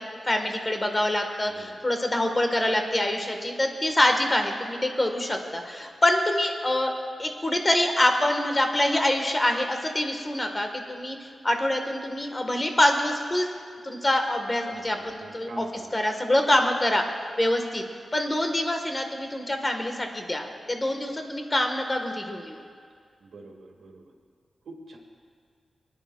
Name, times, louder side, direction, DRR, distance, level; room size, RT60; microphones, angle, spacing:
voice 1, 0.0-6.9 7.2-13.5 13.8-15.6 15.9-17.0 17.4-17.8 18.1-22.6, left 1 dB, 25° left, 4 dB, 1.3 m, -25 dB
voice 2, 1.4-1.9 14.7-15.9 23.2-24.1 24.6-25.0, right 2 dB, 85° right, 0 dB, 1.8 m, -44 dB
24.5 x 9.8 x 2.3 m, 2.1 s
cardioid pair, 65°, 0 cm